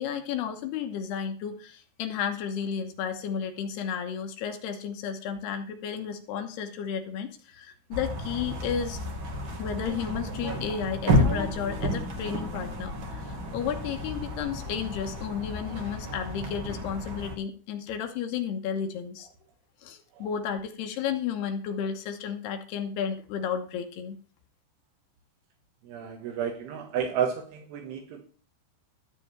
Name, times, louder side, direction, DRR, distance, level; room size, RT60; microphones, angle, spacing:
voice 1, 0.0-9.0 9.6-19.3 19.8-24.2, left 7 dB, 70° left, 6 dB, 2.7 m, -33 dB
sound 1, 7.9-17.3, equal, 60° right, 1.3 m, -31 dB
voice 2, 25.8-28.3, right 8 dB, 80° right, 5 dB, 3.5 m, -31 dB
13.5 x 5.0 x 8.9 m, 0.40 s
omnidirectional pair, 5.7 m